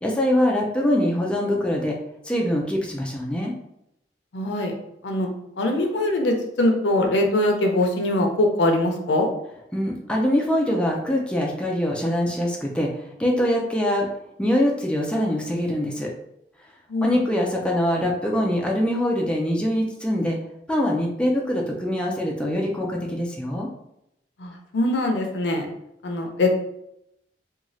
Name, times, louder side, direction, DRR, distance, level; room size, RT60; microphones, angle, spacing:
voice 1, 0.0-2.0 2.3-3.5 9.7-12.9 13.2-14.1 14.4-16.1 17.0-20.4 20.7-23.7, left 1 dB, 5° left, -1 dB, 0.4 m, -23 dB
voice 2, 4.3-4.7 5.0-5.3 5.6-9.3 16.9-17.2 24.4-25.7 26.0-26.5, left 1 dB, 80° left, 3 dB, 0.5 m, -22 dB
3.0 x 2.3 x 2.6 m, 0.81 s
head